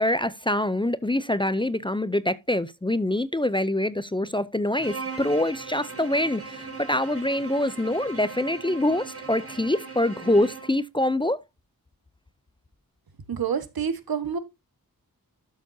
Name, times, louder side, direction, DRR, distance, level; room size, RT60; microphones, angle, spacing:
voice 1, 0.0-11.4, left 1 dB, 15° left, 0.5 m, -25 dB
Bowed string instrument, 4.8-10.8, right 4 dB, 40° right, 4.4 m, -39 dB
voice 2, 13.3-14.4, right 7 dB, 75° right, 1.6 m, -28 dB
12.0 x 7.0 x 2.7 m
wide cardioid pair, 130°, 36 cm